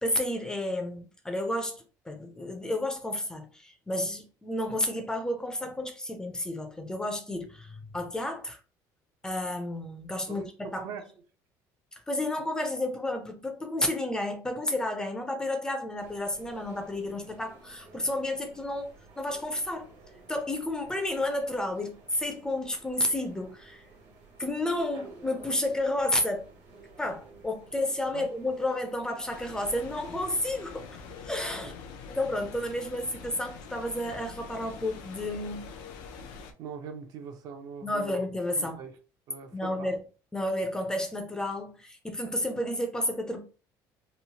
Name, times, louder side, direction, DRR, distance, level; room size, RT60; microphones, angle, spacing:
voice 1, 0.0-8.6 9.2-10.8 11.9-18.9 19.2-19.9 20.3-23.8 24.4-26.5 27.0-30.9 31.2-31.7 32.1-35.6 37.8-38.8 39.5-40.0 40.3-43.4, left 1 dB, 10° left, 0.4 m, -31 dB
voice 2, 10.3-11.1 28.1-28.3 31.6-31.7 36.6-38.3 38.6-38.9 39.3-40.0, right 6 dB, 55° right, 0.5 m, -42 dB
sound 1, 16.0-31.2, right 3 dB, 75° right, 1.3 m, -53 dB
sound 2, 29.3-36.5, left 5 dB, 80° left, 0.4 m, -45 dB
3.0 x 2.0 x 2.7 m
cardioid pair, 140°, 8 cm